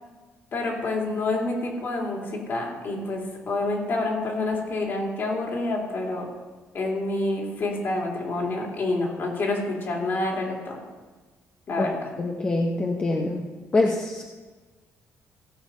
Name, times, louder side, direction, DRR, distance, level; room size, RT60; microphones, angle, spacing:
voice 1, 0.5-6.3 6.7-10.8 11.7-11.9, left 2 dB, 45° left, -1 dB, 2.9 m, -28 dB
voice 2, 12.2-13.4 13.7-14.2, left 2 dB, 25° left, 0 dB, 0.9 m, -24 dB
17.0 x 6.5 x 5.5 m, 1.3 s
cardioid pair, 145°, 5 cm